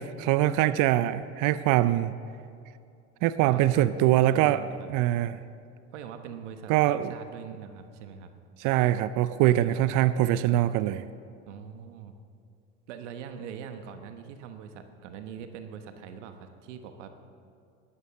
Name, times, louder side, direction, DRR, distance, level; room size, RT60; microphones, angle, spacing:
voice 1, 0.0-2.1 3.2-5.4 6.7-7.1 8.6-11.0, right 13 dB, 60° right, 14 dB, 0.6 m, -23 dB
voice 2, 4.3-4.9 5.9-8.3 11.5-12.1 12.9-17.1, right 7 dB, 85° right, 7 dB, 1.2 m, -42 dB
13.0 x 11.0 x 6.7 m, 2.4 s
supercardioid pair, 95°, 35 cm